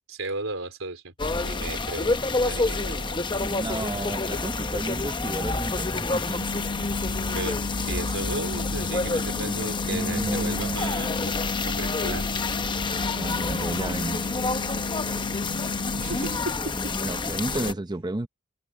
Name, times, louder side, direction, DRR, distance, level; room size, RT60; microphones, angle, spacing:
voice 1, 0.1-1.1 1.4-3.2 7.3-11.3 11.7-12.3 16.0-17.1, right 2 dB, 80° right, 4.2 m, -35 dB
sound 1, 1.2-17.7, left 3 dB, 25° left, 0.8 m, -28 dB
voice 2, 3.4-6.5 9.1-11.1 13.1-14.2 17.0-18.3, right 1 dB, 20° right, 0.6 m, -32 dB
sound 2, 6.4-16.4, left 4 dB, 75° left, 0.6 m, -34 dB
head